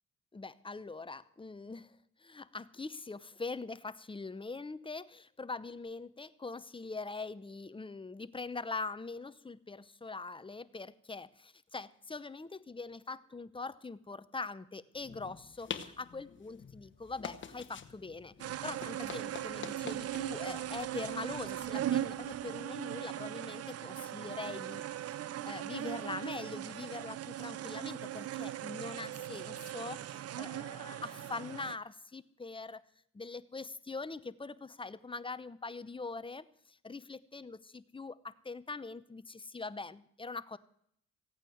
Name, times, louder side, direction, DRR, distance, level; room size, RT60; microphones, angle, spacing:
voice 1, 0.3-32.8 33.1-40.6, left 3 dB, 15° left, 15 dB, 0.8 m, -43 dB
sound 1, 14.9-22.5, left 7 dB, 40° left, 1.2 m, -48 dB
sound 2, 18.4-31.8, right 12 dB, 55° right, 0.6 m, -39 dB
16.0 x 8.9 x 7.8 m, 0.69 s
cardioid pair, 90°, 30 cm